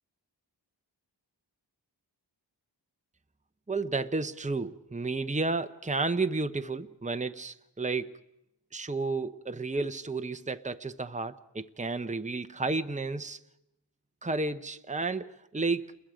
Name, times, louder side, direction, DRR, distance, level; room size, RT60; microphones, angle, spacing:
voice 1, 3.7-8.2 8.7-13.4 14.2-16.0, right 3 dB, 15° right, 0.8 m, -32 dB
29.5 x 21.5 x 5.1 m
wide cardioid pair, 40°, 43 cm